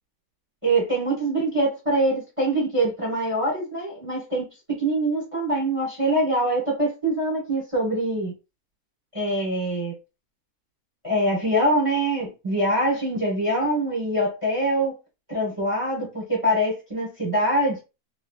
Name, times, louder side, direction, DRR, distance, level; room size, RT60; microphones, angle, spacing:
voice 1, 0.6-8.3 9.1-9.9 11.0-14.9 15.3-17.8, right 1 dB, 25° right, 1.0 m, -24 dB
3.2 x 2.6 x 2.3 m
omnidirectional pair, 1.7 m